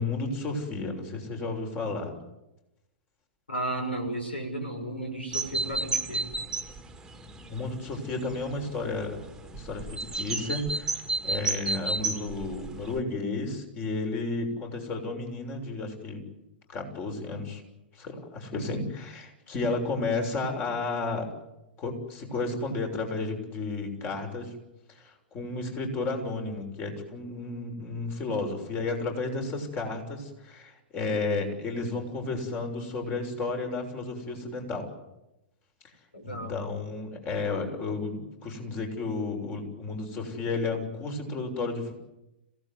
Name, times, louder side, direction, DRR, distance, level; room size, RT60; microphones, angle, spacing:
voice 1, 0.0-2.1 7.5-16.2 16.7-17.6 17.9-21.3 21.8-24.5 24.9-34.9 36.2-41.9, left 3 dB, 35° left, 4 dB, 6.6 m, -32 dB
voice 2, 3.5-6.3 18.5-18.9 36.1-36.5, right 1 dB, 90° left, 6 dB, 6.3 m, -34 dB
sound 1, 5.3-13.0, right 3 dB, 10° right, 2.0 m, -33 dB
27.0 x 17.5 x 9.6 m, 0.95 s
hypercardioid pair, 110°, 6 cm